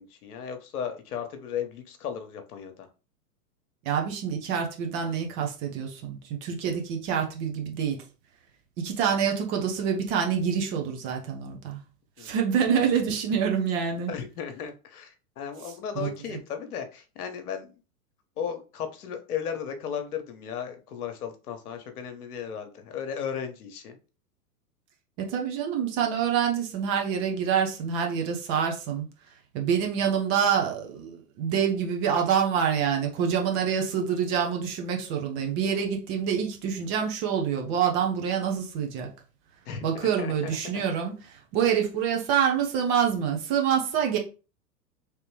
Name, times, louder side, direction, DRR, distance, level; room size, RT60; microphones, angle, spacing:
voice 1, 0.0-2.9 12.2-12.3 14.1-17.7 18.4-24.0 39.7-40.6, left 7 dB, 65° left, 1.0 m, -35 dB
voice 2, 3.8-8.0 8.8-11.8 12.2-14.1 15.9-16.4 25.2-29.1 29.5-39.1 39.8-44.2, right 7 dB, 40° right, 1.0 m, -26 dB
3.3 x 3.0 x 3.2 m
hypercardioid pair, 105°, 47 cm